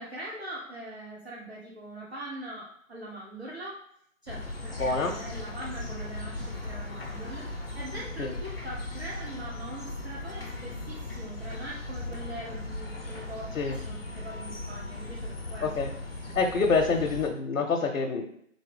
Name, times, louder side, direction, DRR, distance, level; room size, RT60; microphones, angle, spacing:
voice 1, 0.0-3.8 4.2-15.7 16.2-16.3, right 1 dB, 50° right, -5 dB, 0.7 m, -42 dB
sound 1, 4.3-17.3, left 2 dB, 45° left, 0.6 m, -38 dB
voice 2, 4.8-5.2 8.2-8.3 13.6-13.8 15.6-15.9 16.3-18.3, left 4 dB, 85° left, 2 dB, 0.7 m, -26 dB
3.5 x 2.7 x 3.2 m, 0.70 s
figure-of-eight pair, 175°, 41 cm